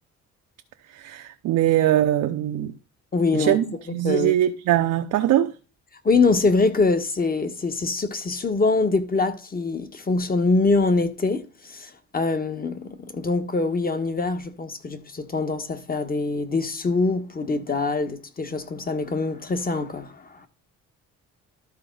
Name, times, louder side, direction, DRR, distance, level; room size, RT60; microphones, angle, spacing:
voice 1, 0.9-2.8 3.3-3.6 3.9-5.5, right 12 dB, 80° right, 0.8 m, -21 dB
voice 2, 3.1-3.6 4.0-4.3 6.0-20.5, left 3 dB, 30° left, 1.4 m, -24 dB
12.5 x 4.5 x 3.9 m
cardioid pair, 90°, 30 cm